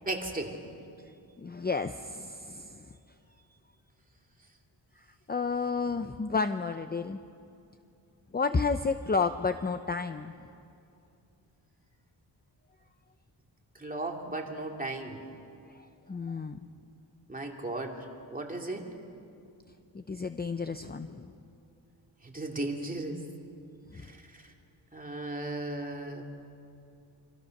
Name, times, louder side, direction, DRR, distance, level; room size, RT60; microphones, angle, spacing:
voice 1, 0.1-0.6 13.7-15.2 17.3-18.1 18.3-18.9 22.2-23.2 23.9-24.1 24.3-24.4 24.9-26.2, right 2 dB, 20° right, 1 dB, 2.7 m, -35 dB
voice 2, 1.4-2.9 5.3-7.2 8.3-10.3 15.7-16.6 19.9-21.3 23.9-24.1, left 4 dB, 20° left, 9 dB, 0.6 m, -31 dB
26.5 x 26.5 x 6.6 m, 2.6 s
wide cardioid pair, 140°, 45 cm